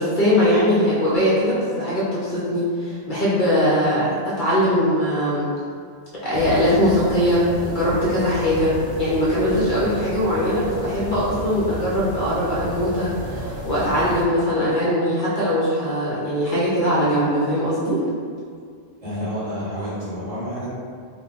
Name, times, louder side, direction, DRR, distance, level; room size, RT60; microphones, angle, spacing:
voice 1, 0.0-5.5 6.1-18.1, equal, 55° left, -8 dB, 0.7 m, -21 dB
sound 1, 6.3-14.3, right 1 dB, 70° right, 0.8 m, -32 dB
voice 2, 19.0-20.7, equal, 35° right, -11 dB, 0.9 m, -29 dB
2.2 x 2.1 x 3.7 m, 2.1 s
omnidirectional pair, 1.1 m